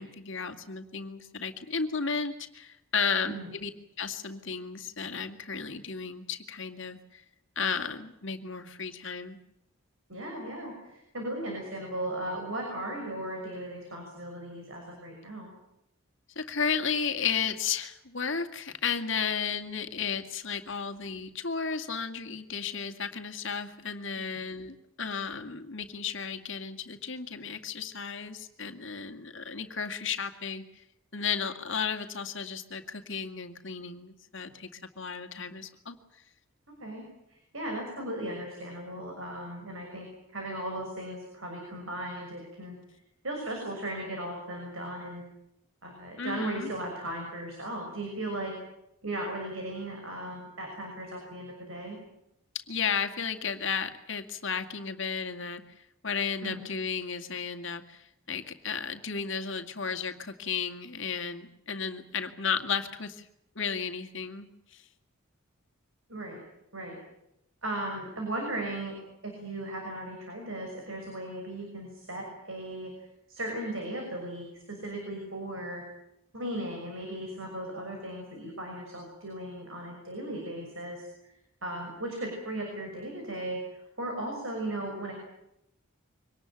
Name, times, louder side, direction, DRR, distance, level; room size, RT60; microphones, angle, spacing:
voice 1, 0.0-3.7 4.0-7.2 7.6-9.4 16.4-30.8 31.1-36.0 46.2-46.7 52.7-63.3 63.6-64.8, left 6 dB, 55° left, 6 dB, 2.2 m, -34 dB
voice 2, 10.1-15.5 24.2-24.3 36.8-37.0 37.3-40.1 40.3-42.8 43.2-45.2 45.8-48.5 49.0-52.0 56.4-56.6 66.1-66.4 66.7-66.9 67.6-69.0 69.2-72.9 73.3-75.8 76.3-81.3 81.6-85.1, right 1 dB, 65° right, 2 dB, 6.3 m, -37 dB
24.5 x 19.0 x 9.2 m, 0.84 s
head